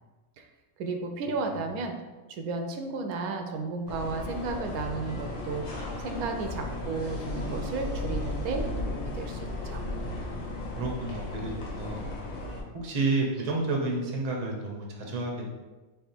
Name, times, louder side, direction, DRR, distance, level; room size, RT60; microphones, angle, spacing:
voice 1, 0.8-1.9 2.3-9.8, right 3 dB, 85° right, 4 dB, 1.1 m, -33 dB
sound 1, 3.9-12.6, left 2 dB, 65° left, 1.4 m, -35 dB
voice 2, 10.0-10.4 10.8-12.0 12.7-15.4, right 3 dB, 35° right, -1 dB, 0.7 m, -31 dB
3.6 x 3.5 x 4.2 m, 1.2 s
omnidirectional pair, 1.6 m